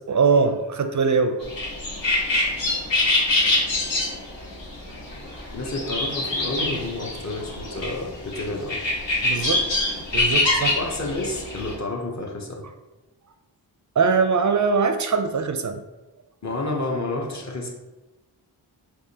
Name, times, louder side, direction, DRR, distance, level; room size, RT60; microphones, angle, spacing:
voice 1, 0.1-1.4 9.2-9.6 10.1-10.8 14.0-15.8, right 5 dB, 45° right, 7 dB, 0.4 m, -21 dB
sound 1, 1.4-11.7, left 2 dB, 85° left, 1.1 m, -25 dB
voice 2, 5.5-8.8 10.7-12.7 16.4-17.7, left 2 dB, 40° left, 0 dB, 0.9 m, -30 dB
4.7 x 2.6 x 2.8 m, 1.1 s
cardioid pair, 50°, 43 cm